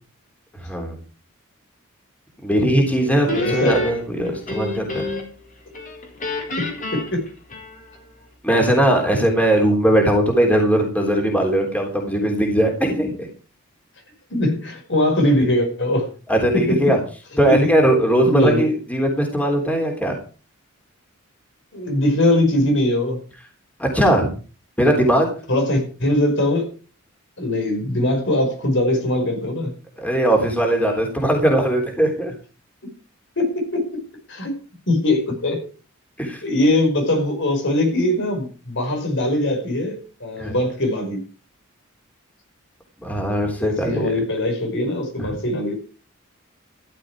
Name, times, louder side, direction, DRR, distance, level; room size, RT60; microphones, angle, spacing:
voice 1, 0.6-1.0 2.4-5.0 8.4-13.3 16.3-17.0 17.4-20.2 23.8-24.3 24.8-25.3 30.0-32.3 36.2-36.4 40.4-40.5 43.0-44.1 45.2-45.3, right 1 dB, 5° left, 1 dB, 3.5 m, -19 dB
voice 2, 3.2-3.8 6.6-7.2 14.3-16.1 16.5-17.0 17.5-17.7 18.2-18.6 21.7-23.2 25.5-26.7 27.4-29.8 33.4-34.0 34.3-34.6 34.9-35.7 36.4-41.2 43.6-45.7, left 1 dB, 60° left, 4 dB, 5.4 m, -21 dB
Guitar, 3.3-5.4 5.7-8.0, left 2 dB, 40° left, 4.4 m, -29 dB
14.0 x 11.5 x 4.9 m, 0.36 s
head